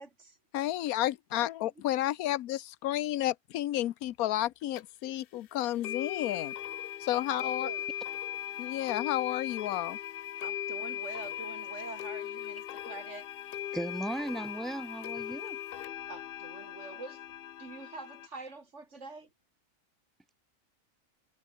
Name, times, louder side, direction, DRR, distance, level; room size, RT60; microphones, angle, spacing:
voice 1, 0.0-0.4 7.3-7.9 10.4-13.3 16.1-17.2 17.6-19.3, right 3 dB, 55° right, 3.2 m, -45 dB
voice 2, 0.5-6.5 7.0-7.7 8.6-10.0, left 13 dB, 85° left, 1.2 m, -31 dB
sound 1, 4.8-4.9 5.8-18.3, left 11 dB, 65° left, 0.6 m, -39 dB
voice 3, 13.7-15.6, right 1 dB, ahead, 1.3 m, -36 dB
omnidirectional pair, 1.5 m